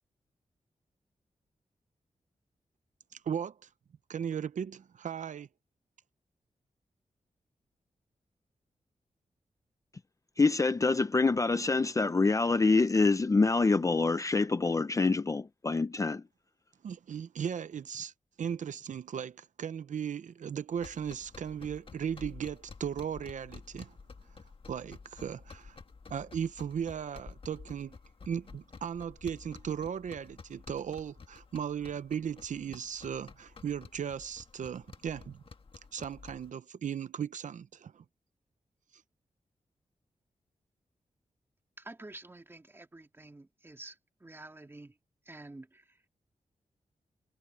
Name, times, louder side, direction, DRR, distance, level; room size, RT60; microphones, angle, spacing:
voice 1, 3.1-3.7 4.1-5.5 16.8-18.1 18.4-24.0 24.7-25.8 26.1-28.0 28.3-35.4 35.9-38.0, right 8 dB, 75° right, 0.6 m, -37 dB
voice 2, 10.4-16.2, left 3 dB, 25° left, 0.5 m, -26 dB
sound 1, 20.8-36.5, left 4 dB, 45° left, 1.5 m, -51 dB
voice 3, 41.8-45.0 45.2-46.0, right 2 dB, 20° right, 2.3 m, -49 dB
wide cardioid pair, 160°, 13 cm